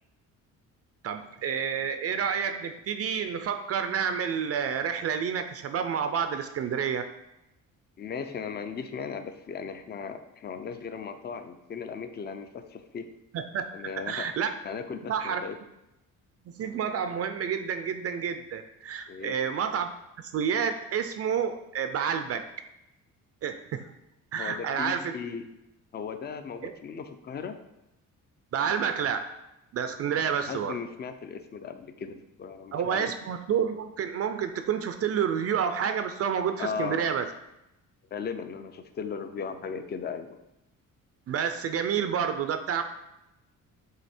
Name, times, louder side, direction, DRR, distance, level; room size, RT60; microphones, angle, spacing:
voice 1, 1.0-7.1 13.3-13.7 14.1-14.5 15.1-15.4 16.6-19.9 20.2-22.4 23.4-23.8 24.3-25.1 26.6-26.7 28.5-29.3 29.7-30.7 32.7-37.3 41.3-42.8, right 7 dB, 45° right, 8 dB, 0.4 m, -29 dB
voice 2, 8.0-13.1 13.7-14.3 14.6-15.6 19.1-19.4 24.4-25.5 25.9-27.6 30.5-33.1 36.6-37.1 38.1-40.4, left 6 dB, 30° left, 9 dB, 0.4 m, -37 dB
7.7 x 2.8 x 4.3 m, 0.89 s
cardioid pair, 155°, 33 cm